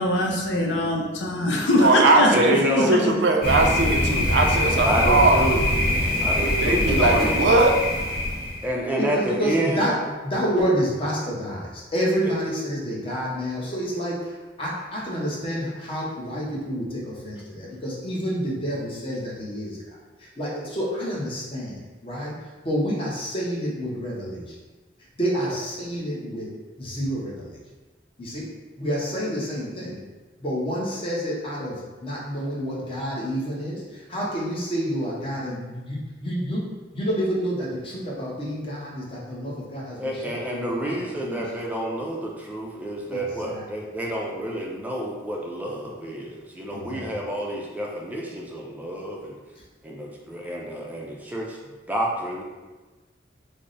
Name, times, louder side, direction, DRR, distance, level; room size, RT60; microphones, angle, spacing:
voice 1, 0.0-3.2, left 1 dB, 80° left, 0 dB, 0.6 m, -22 dB
voice 2, 1.8-5.4 6.6-7.8, right 2 dB, 75° right, 2 dB, 0.4 m, -20 dB
voice 3, 2.3-3.0 4.8-5.6 6.2-7.3 8.6-9.9 40.0-49.3 49.8-51.6 51.9-52.4, right 1 dB, 10° right, -2 dB, 0.4 m, -28 dB
Thunder, 3.4-8.7, left 1 dB, 60° left, 1.0 m, -23 dB
voice 4, 9.0-10.0 10.2-24.6 25.1-27.6 28.2-28.5 28.8-30.0 30.4-41.7 43.1-43.7 46.7-47.1, equal, 30° left, -5 dB, 0.8 m, -29 dB
3.4 x 2.0 x 3.9 m, 1.2 s
head